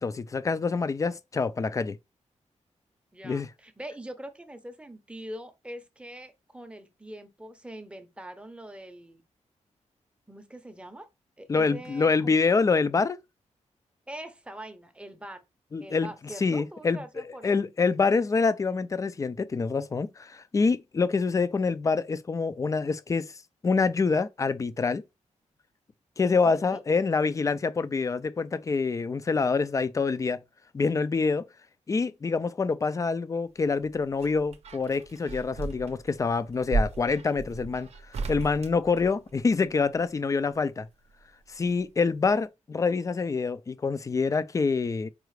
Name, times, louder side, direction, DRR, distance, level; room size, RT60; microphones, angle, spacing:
voice 1, 0.0-2.0 3.2-3.5 11.5-13.2 15.7-16.1 16.4-17.0 17.4-23.3 23.6-25.0 26.2-30.4 30.7-31.4 31.9-37.9 38.3-40.9 41.5-45.1, left 4 dB, 25° left, 0.3 m, -26 dB
voice 2, 3.1-9.2 10.3-11.1 11.4-12.4 14.1-15.4 15.8-17.5 26.4-26.8, right 1 dB, 10° right, 0.7 m, -43 dB
sound 1, 33.6-39.7 41.1-41.9 42.2-42.3, right 3 dB, 60° right, 0.6 m, -35 dB
4.8 x 2.4 x 3.2 m
wide cardioid pair, 110°, 12 cm